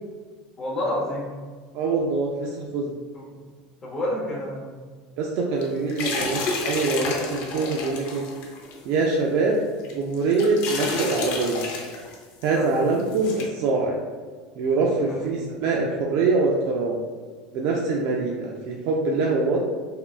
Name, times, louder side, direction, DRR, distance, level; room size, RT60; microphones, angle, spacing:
voice 1, 0.6-1.3 3.1-3.2 3.8-4.7 12.5-12.8 15.1-15.4, left 1 dB, 20° left, -5 dB, 0.8 m, -29 dB
voice 2, 1.7-2.9 5.2-8.2 8.9-9.6 9.9-11.6 12.4-14.0 14.6-17.1 17.5-19.6, right 3 dB, 55° right, -1 dB, 0.3 m, -24 dB
sound 1, 5.6-8.8 9.1-9.2 9.8-12.2 12.4-12.5 13.0-13.5, left 3 dB, 50° left, 0.5 m, -30 dB
3.5 x 2.3 x 2.3 m, 1.5 s
cardioid pair, 165°, 3 cm